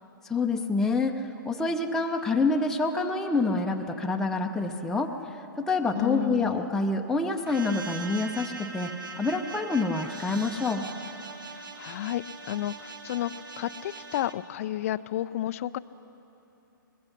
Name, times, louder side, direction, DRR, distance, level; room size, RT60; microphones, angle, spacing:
voice 1, 0.3-5.1 5.6-8.9 9.2-10.8, left 3 dB, 5° left, 1 dB, 0.7 m, -27 dB
voice 2, 5.9-6.7 11.5-15.8, left 13 dB, 40° left, 16 dB, 0.5 m, -32 dB
sound 1, 7.5-14.3, right 3 dB, 70° right, 1.5 m, -41 dB
23.5 x 20.5 x 5.8 m, 3.0 s
figure-of-eight pair, 120°, 11 cm